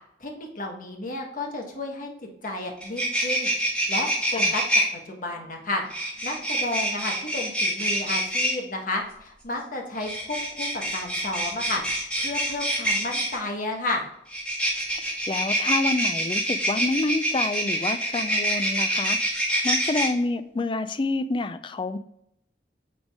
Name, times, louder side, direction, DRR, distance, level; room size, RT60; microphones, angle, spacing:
voice 1, 0.2-3.5 3.9-4.6 4.9-11.8 12.2-14.0, left 2 dB, 45° left, 1 dB, 1.4 m, -32 dB
sound 1, 2.4-2.5 2.8-4.8 5.9-8.5 10.0-13.4 14.3-20.1, right 1 dB, 5° left, 1.9 m, -26 dB
voice 2, 15.0-19.2 19.6-22.0, left 2 dB, 25° left, 12 dB, 0.4 m, -28 dB
8.7 x 3.9 x 3.6 m, 0.76 s
head